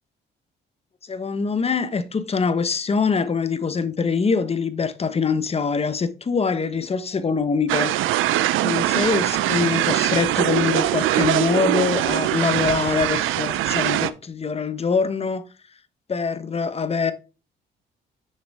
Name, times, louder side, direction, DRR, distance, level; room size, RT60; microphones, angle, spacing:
voice 1, 1.1-7.9 8.6-15.4 16.1-17.1, left 5 dB, 30° left, 1.0 m, -24 dB
sound 1, 7.7-14.1, right 14 dB, 90° right, 0.5 m, -22 dB
6.8 x 6.6 x 3.5 m
cardioid pair, 90°, 20 cm